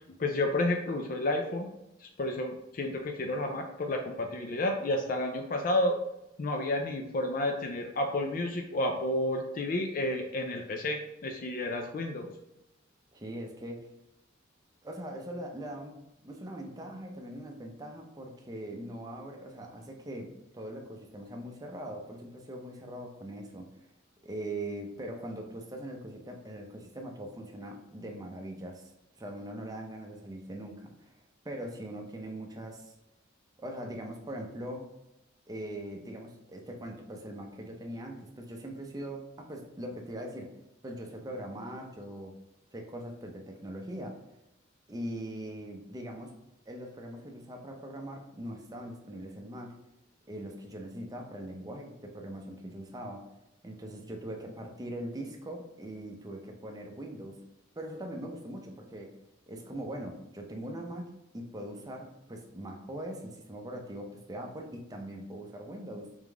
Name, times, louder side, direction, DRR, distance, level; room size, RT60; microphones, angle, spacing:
voice 1, 0.2-1.7 2.0-5.9 6.4-12.3, left 1 dB, 45° left, 3 dB, 0.4 m, -31 dB
voice 2, 13.1-13.9 14.8-23.7 24.2-28.9 29.2-31.2 31.4-32.9 33.6-34.9 35.5-40.5 40.8-42.4 42.7-44.2 44.9-46.3 46.7-49.8 50.3-53.3 53.6-57.4 57.8-59.1 59.5-66.2, right 1 dB, 20° right, 2 dB, 0.6 m, -41 dB
3.6 x 3.6 x 3.4 m, 0.90 s
head